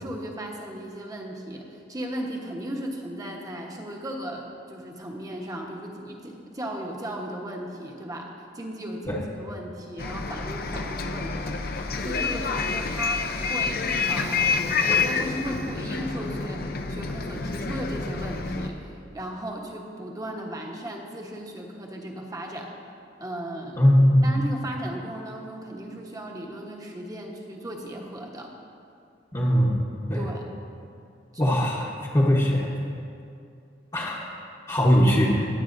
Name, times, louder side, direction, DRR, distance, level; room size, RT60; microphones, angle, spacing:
voice 1, 0.0-22.7 23.2-24.0 24.2-28.5 30.1-30.5 34.8-35.1, right 1 dB, 20° right, 0 dB, 1.1 m, -36 dB
Bus, 10.0-18.7, left 4 dB, 55° left, 0.6 m, -28 dB
voice 2, 23.8-24.3 29.3-29.8 30.1-30.2 31.4-32.7 33.9-34.2 34.7-35.4, equal, 25° left, -6 dB, 1.1 m, -20 dB
21.0 x 8.1 x 2.6 m, 2.5 s
head